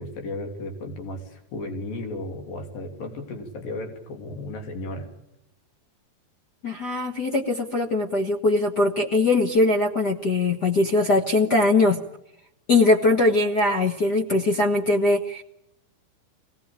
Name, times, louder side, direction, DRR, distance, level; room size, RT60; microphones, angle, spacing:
voice 1, 0.0-5.1, left 2 dB, 70° left, 4 dB, 4.9 m, -34 dB
voice 2, 6.6-12.0 12.7-15.4, left 2 dB, 50° left, -1 dB, 1.2 m, -21 dB
25.0 x 18.5 x 8.9 m, 0.83 s
omnidirectional pair, 4.1 m